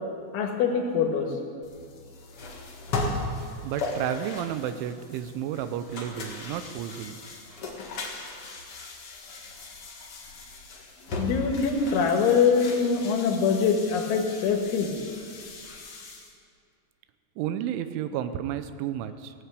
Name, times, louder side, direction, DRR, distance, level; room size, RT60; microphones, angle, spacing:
voice 1, 0.3-1.3 11.2-14.9, left 6 dB, 80° left, 2 dB, 3.9 m, -23 dB
sound 1, 1.6-16.3, left 3 dB, 60° left, 1.5 m, -37 dB
voice 2, 3.6-7.2 17.4-19.3, right 10 dB, 85° right, 11 dB, 3.2 m, -32 dB
16.5 x 9.5 x 8.2 m, 2.3 s
omnidirectional pair, 5.4 m